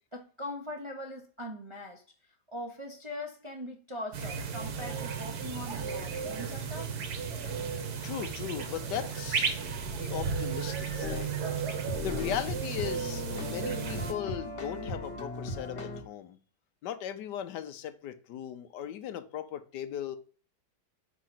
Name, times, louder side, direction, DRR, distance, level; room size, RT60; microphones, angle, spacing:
voice 1, 0.1-2.0 2.5-6.9, left 1 dB, 30° right, 0.5 m, -41 dB
sound 1, 4.1-14.1, right 6 dB, 70° right, 1.4 m, -34 dB
voice 2, 8.0-9.6 9.9-11.4 11.7-11.8 12.0-16.4 16.8-20.2, left 10 dB, 85° left, 1.3 m, -38 dB
sound 2, 11.0-11.3 11.6-11.7 11.9-16.0, left 2 dB, 50° left, 1.1 m, -37 dB
5.1 x 3.7 x 5.8 m
omnidirectional pair, 1.8 m